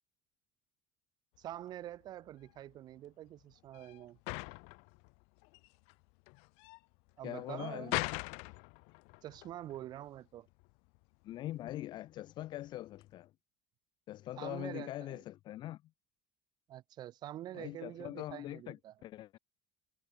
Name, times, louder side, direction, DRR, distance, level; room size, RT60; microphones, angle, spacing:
sound 1, 1.4-13.2, left 33 dB, 85° left, 1.2 m, -44 dB
voice 1, 1.4-4.2 7.2-8.1 9.2-10.5 14.4-15.2 16.7-18.9, right 13 dB, 45° right, 0.4 m, -46 dB
voice 2, 7.2-8.1 11.2-13.3 14.1-15.8 17.5-19.4, left 14 dB, 45° left, 0.5 m, -42 dB
cardioid pair, 145°, 10 cm